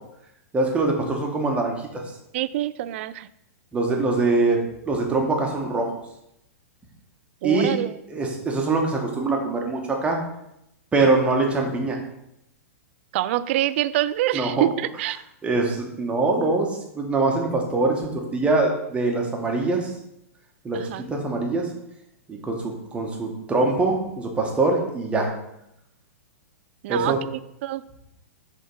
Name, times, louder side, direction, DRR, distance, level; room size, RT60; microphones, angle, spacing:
voice 1, 0.5-2.0 3.7-4.6 4.8-5.9 7.4-7.7 8.1-10.2 10.9-12.0 14.3-14.5 15.4-19.9 20.6-21.7 22.3-25.3 26.9-27.2, right 3 dB, 15° right, 0 dB, 1.2 m, -23 dB
voice 2, 2.3-3.3 7.4-7.9 13.1-15.2 20.7-21.0 26.8-27.2 27.6-27.8, right 14 dB, 50° right, 15 dB, 0.3 m, -25 dB
5.2 x 3.7 x 5.3 m, 0.81 s
hypercardioid pair, 130°, 8 cm